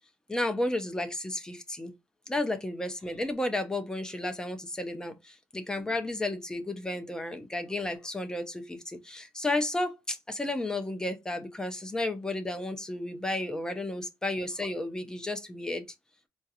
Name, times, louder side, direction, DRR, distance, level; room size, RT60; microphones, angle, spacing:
voice 1, 0.3-1.9 2.3-15.8, left 2 dB, 10° left, 0.7 m, -32 dB
4.3 x 2.5 x 2.8 m
cardioid pair, 125°, 7 cm